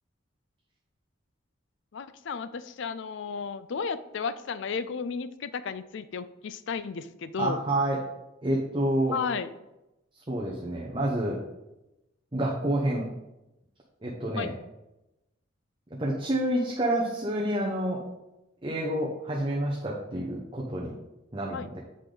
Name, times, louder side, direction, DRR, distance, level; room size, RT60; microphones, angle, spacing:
voice 1, 1.9-7.6 9.1-9.5 14.4-14.5 21.5-21.7, left 5 dB, 65° left, 14 dB, 0.4 m, -33 dB
voice 2, 7.4-8.0 8.4-9.2 10.3-11.4 12.3-13.0 14.0-14.5 16.0-18.0 18.6-20.9 21.3-21.8, right 1 dB, 25° right, -4 dB, 0.9 m, -28 dB
8.2 x 5.1 x 3.9 m, 0.95 s
head